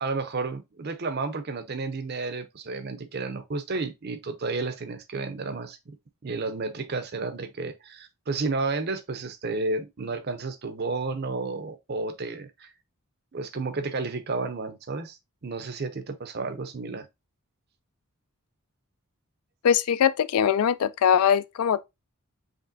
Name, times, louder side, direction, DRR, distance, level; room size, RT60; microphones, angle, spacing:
voice 1, 0.0-5.8 6.2-12.7 13.3-15.2 15.4-17.1, right 3 dB, 45° right, 0.6 m, -31 dB
voice 2, 19.6-21.8, left 8 dB, 80° left, 0.3 m, -21 dB
5.0 x 3.2 x 2.6 m
head